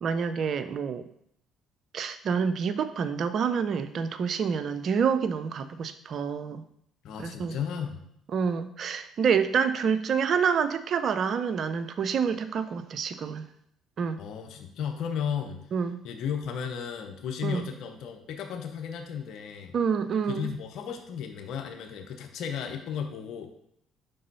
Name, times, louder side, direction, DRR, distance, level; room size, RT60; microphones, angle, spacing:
voice 1, 0.0-1.1 1.9-6.6 7.2-7.6 8.3-13.4 14.0-14.2 15.7-16.0 17.4-17.7 19.7-20.5, right 6 dB, 55° right, 11 dB, 0.5 m, -27 dB
voice 2, 7.0-8.0 14.2-15.6 16.0-19.7 20.3-23.5, left 7 dB, 65° left, 5 dB, 0.9 m, -34 dB
5.4 x 3.8 x 5.4 m, 0.70 s
hypercardioid pair, 55°, 0 cm